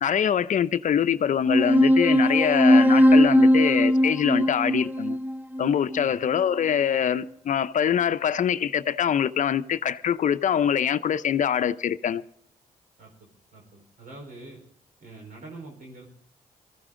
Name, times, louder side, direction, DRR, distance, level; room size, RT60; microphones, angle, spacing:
voice 1, 0.0-5.2 5.6-12.2, left 8 dB, 60° left, 0.6 m, -24 dB
sound 1, 1.5-6.4, equal, 10° right, 0.6 m, -19 dB
voice 2, 13.0-14.6 15.0-16.1, right 2 dB, 70° right, 4.3 m, -45 dB
19.5 x 14.5 x 3.7 m
cardioid pair, 75°, 15 cm